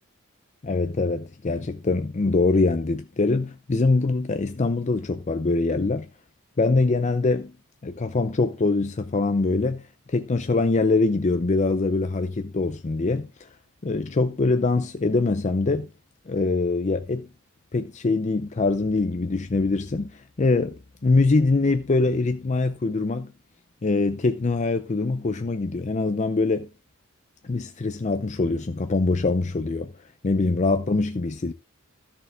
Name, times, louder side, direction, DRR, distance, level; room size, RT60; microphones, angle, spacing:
voice 1, 0.6-6.1 6.6-7.5 7.8-13.3 13.8-15.9 16.3-17.3 17.7-23.3 23.8-26.7 27.4-29.9 30.2-31.5, left 3 dB, 35° left, 0.5 m, -23 dB
13.0 x 6.6 x 3.4 m
head